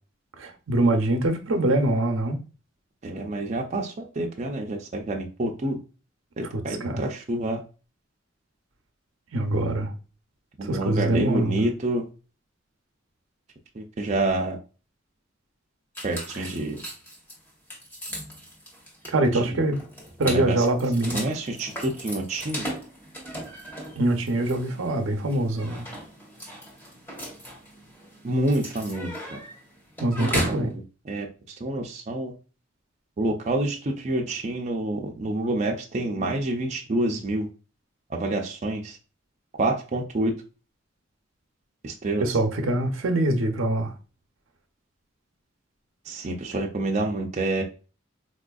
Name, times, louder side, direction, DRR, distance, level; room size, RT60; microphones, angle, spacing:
voice 1, 0.4-2.4 6.5-7.0 9.3-9.9 10.6-11.7 16.4-16.5 19.1-19.8 20.2-21.3 24.0-25.9 30.0-30.7 42.2-43.9, right 1 dB, 90° right, 0.6 m, -24 dB
voice 2, 3.0-5.8 6.4-7.6 10.6-12.1 13.7-14.6 16.0-16.8 19.3-19.6 20.2-20.7 21.1-22.7 28.2-29.4 30.2-31.3 31.6-32.3 33.2-37.5 38.1-39.0 39.6-40.3 41.8-42.4 46.1-47.6, right 2 dB, 35° right, 0.4 m, -28 dB
sound 1, 15.9-30.7, equal, 10° left, 0.9 m, -37 dB
4.1 x 2.5 x 2.2 m
head